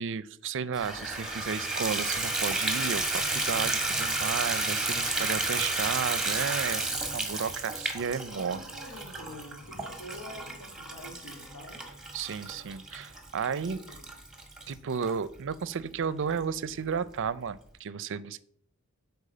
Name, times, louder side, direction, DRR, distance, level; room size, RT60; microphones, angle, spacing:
voice 1, 0.0-8.6 12.1-13.8 14.7-18.4, right 6 dB, 60° right, 18 dB, 0.5 m, -33 dB
Water tap faucet / Bathtub (filling or washing), 0.7-15.1 15.7-15.8 16.3-16.4 16.7-16.8, right 2 dB, 5° right, 1.4 m, -32 dB
voice 2, 8.3-11.8 13.4-14.1, left 1 dB, 75° left, -2 dB, 2.8 m, -47 dB
9.9 x 4.6 x 6.7 m, 0.66 s
head